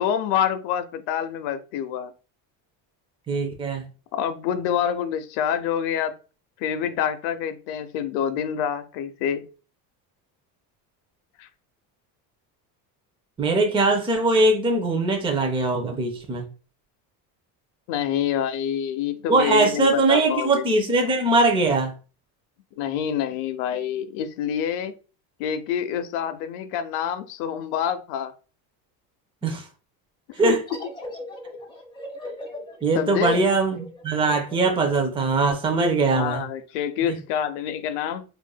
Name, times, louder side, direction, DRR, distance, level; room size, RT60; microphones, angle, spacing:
voice 1, 0.0-2.1 4.1-6.1 6.6-9.5 11.4-11.5 17.9-20.6 22.8-24.9 25.4-28.3 30.4-30.5 32.9-33.4 36.1-38.2, left 9 dB, 80° left, 0.6 m, -27 dB
voice 2, 3.3-3.9 13.4-16.5 19.3-21.9 29.4-29.7 30.3-30.6 32.8-36.4 37.1-37.2, right 3 dB, 15° right, 0.5 m, -21 dB
sound 1, 30.7-36.0, left 1 dB, 10° left, 0.8 m, -39 dB
4.5 x 2.5 x 2.2 m
cardioid pair, 140°, 42 cm